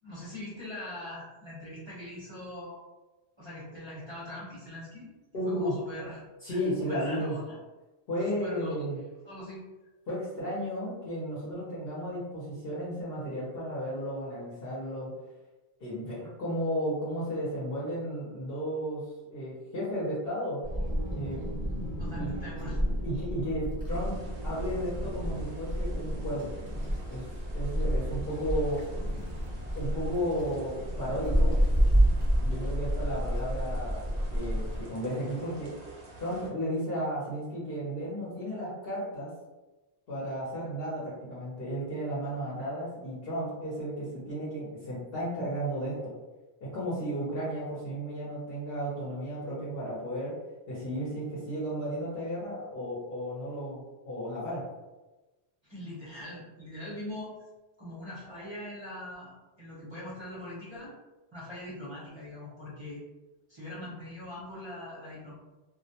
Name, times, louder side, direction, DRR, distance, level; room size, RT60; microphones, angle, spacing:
voice 1, 0.0-2.8 3.4-5.1 5.4-7.6 8.4-8.8 9.2-9.6 22.0-22.8 23.1-23.2 55.7-57.3 57.8-59.3 59.6-60.9 61.3-63.0 63.5-65.3, left 1 dB, 30° right, -8 dB, 0.6 m, -42 dB
voice 2, 5.3-5.8 6.4-7.3 8.1-9.0 10.1-15.2 15.8-20.6 21.1-21.5 21.9-22.3 23.0-24.2 24.4-26.5 27.1-28.9 29.7-31.6 32.4-35.8 36.2-39.3 40.1-46.1 46.6-50.4 50.7-54.7, equal, 60° left, -8 dB, 0.9 m, -34 dB
Wind, 20.6-34.8, equal, 5° left, 0.8 m, -30 dB
sound 1, 23.9-36.5, right 3 dB, 70° right, 0.8 m, -48 dB
2.2 x 2.0 x 2.7 m, 1.1 s
omnidirectional pair, 1.1 m